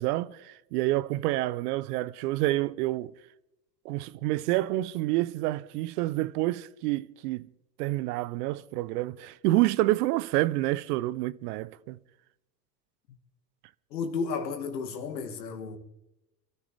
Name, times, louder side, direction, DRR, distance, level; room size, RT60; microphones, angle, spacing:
voice 1, 0.0-3.1 3.8-7.5 7.8-12.0, right 17 dB, 65° right, 0.8 m, -28 dB
voice 2, 13.9-15.8, left 5 dB, 85° left, 2.2 m, -33 dB
25.5 x 13.0 x 3.5 m
hypercardioid pair, 85°, 49 cm